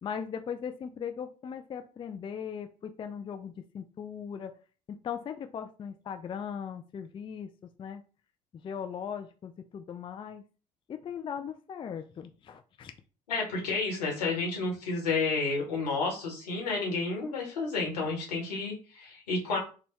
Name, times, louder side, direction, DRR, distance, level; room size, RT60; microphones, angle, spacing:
voice 1, 0.0-4.5 4.9-7.5 7.8-8.0 8.6-10.4 10.9-12.9, left 7 dB, 25° left, 8 dB, 0.4 m, -38 dB
voice 2, 13.3-19.6, left 3 dB, 80° left, -1 dB, 1.2 m, -31 dB
4.0 x 2.2 x 3.0 m, 0.36 s
figure-of-eight pair, 55°, 20 cm